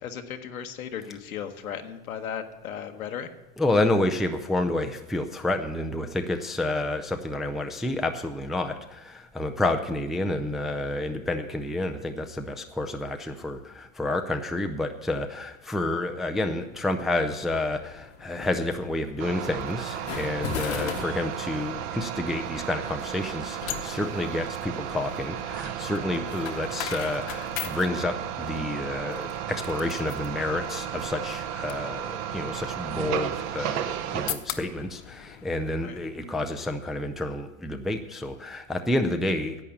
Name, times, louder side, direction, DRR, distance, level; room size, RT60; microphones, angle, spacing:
voice 1, 0.0-3.3 35.8-36.0, left 8 dB, 85° left, 6 dB, 1.3 m, -36 dB
voice 2, 3.6-39.6, left 2 dB, ahead, 5 dB, 0.4 m, -29 dB
sound 1, 17.3-36.3, left 10 dB, 50° left, 1.1 m, -40 dB
sound 2, 19.2-34.4, right 10 dB, 40° right, 0.8 m, -34 dB
11.0 x 8.6 x 7.0 m, 1.0 s
hypercardioid pair, 110°, 41 cm